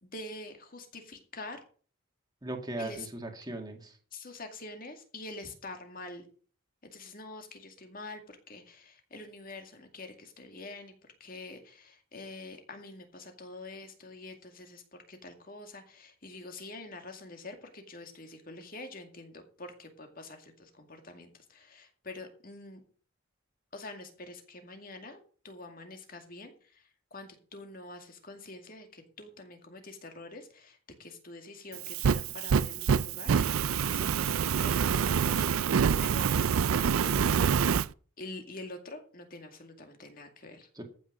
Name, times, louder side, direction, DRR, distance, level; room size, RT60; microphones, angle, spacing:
voice 1, 0.0-1.6 2.8-3.1 4.1-6.2 6.8-10.9 11.2-22.8 23.7-37.6 38.2-40.7, left 2 dB, 40° left, 5 dB, 2.2 m, -46 dB
voice 2, 2.4-4.0 40.8-40.9, right 1 dB, 20° right, 3 dB, 2.0 m, -38 dB
Fire, 31.7-37.9, right 7 dB, 80° right, 0.4 m, -26 dB
14.5 x 6.4 x 6.2 m, 0.42 s
head